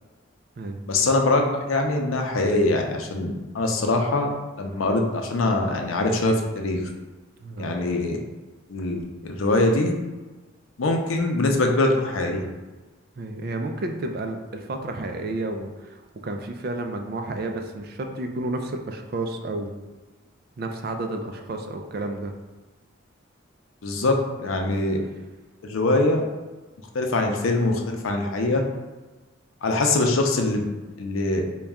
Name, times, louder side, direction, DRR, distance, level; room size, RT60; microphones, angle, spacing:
voice 1, 0.9-4.3 4.6-6.8 7.6-8.2 8.7-9.9 10.8-12.4 23.8-25.0 25.6-26.2 26.9-28.6 29.6-30.6 31.0-31.5, left 2 dB, 85° left, 2 dB, 0.6 m, -23 dB
voice 2, 7.4-7.8 13.2-19.7 20.6-22.3, right 2 dB, 50° right, 5 dB, 0.4 m, -31 dB
4.0 x 2.3 x 3.5 m, 1.2 s
head